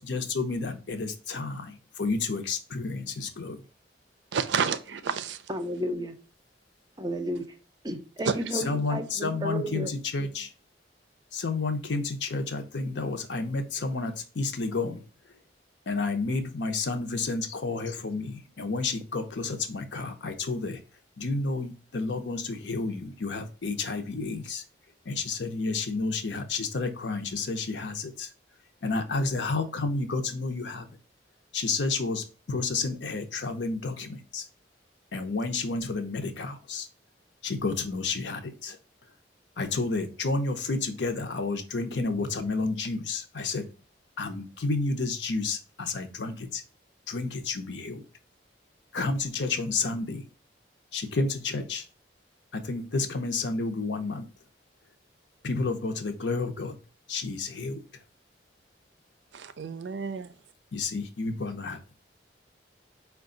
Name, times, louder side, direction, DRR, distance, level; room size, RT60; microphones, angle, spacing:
voice 1, 0.1-3.6 8.6-10.5 11.3-15.0 15.9-20.8 21.2-24.6 25.1-28.3 28.8-30.9 31.5-34.4 35.1-36.9 37.4-38.8 39.6-43.7 44.2-46.6 47.1-48.0 48.9-50.2 50.9-51.8 52.5-54.3 55.4-56.7 57.1-57.8 60.7-61.8, left 3 dB, 80° left, 0.7 m, -30 dB
voice 2, 4.3-5.4 8.3-8.4 59.3-60.3, right 6 dB, 80° right, 0.4 m, -30 dB
voice 3, 5.5-6.2 7.0-7.6 7.8-9.9, equal, 20° right, 0.5 m, -32 dB
4.5 x 2.3 x 3.7 m
head